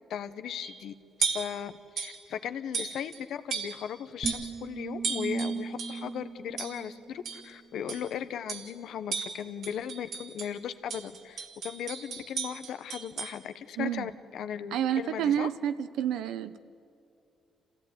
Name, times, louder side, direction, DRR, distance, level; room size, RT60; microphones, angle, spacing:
voice 1, 0.1-0.9 1.2-15.5, left 8 dB, 75° left, 11 dB, 1.1 m, -37 dB
sound 1, 0.6-0.8 1.2-1.6 2.0-2.2 2.7-3.2 3.5-3.9 4.2-4.6 5.0-6.0 6.6-6.9 7.2-7.5 7.9-8.1 8.5-8.8 9.1-10.5 10.9-13.4, right 6 dB, 65° right, 2.3 m, -35 dB
sound 2, 4.2-7.6, right 5 dB, 35° right, 1.7 m, -37 dB
voice 2, 13.8-14.1 14.7-16.6, right 10 dB, 85° right, 12 dB, 0.9 m, -29 dB
26.5 x 16.5 x 9.5 m, 2.5 s
cardioid pair, 90°, 0 cm